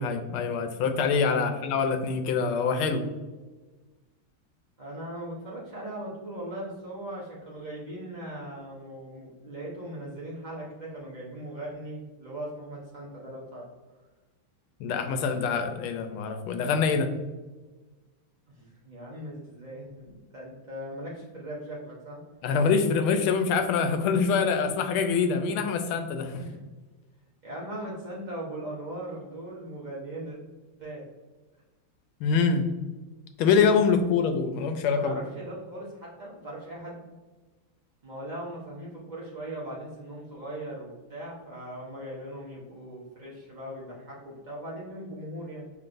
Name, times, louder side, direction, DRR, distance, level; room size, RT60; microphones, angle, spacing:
voice 1, 0.0-3.0 14.8-17.1 22.4-26.4 32.2-32.6 33.4-35.1, left 5 dB, 85° left, 7 dB, 1.4 m, -25 dB
voice 2, 1.3-1.7 4.8-13.6 18.6-22.2 26.4-26.6 27.4-30.4 30.8-31.0 34.9-37.0 38.0-45.7, right 1 dB, 80° right, -6 dB, 0.4 m, -39 dB
5.8 x 3.5 x 2.5 m, 1.2 s
omnidirectional pair, 2.2 m